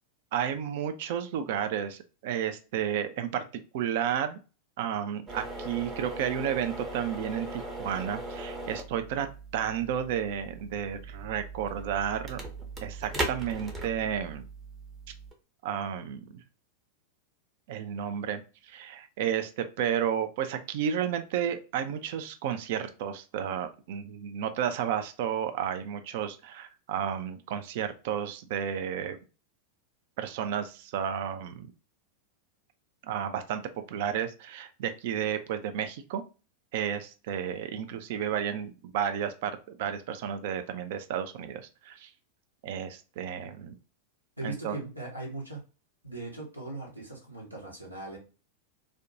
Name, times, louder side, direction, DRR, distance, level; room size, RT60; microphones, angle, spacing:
voice 1, 0.3-3.4 3.7-4.4 4.8-9.3 9.5-12.4 12.8-14.4 15.6-16.4 17.7-29.2 30.2-31.7 33.0-33.6 33.9-36.2 36.7-42.1 42.6-43.7 44.4-44.8, right 9 dB, 50° right, 9 dB, 0.3 m, -32 dB
sound 1, 5.3-15.3, right 2 dB, 20° right, 0.7 m, -39 dB
voice 2, 44.4-45.6 46.0-48.2, right 2 dB, 90° right, -2 dB, 0.9 m, -39 dB
2.6 x 2.1 x 2.6 m, 0.32 s
figure-of-eight pair, 90°, 0 cm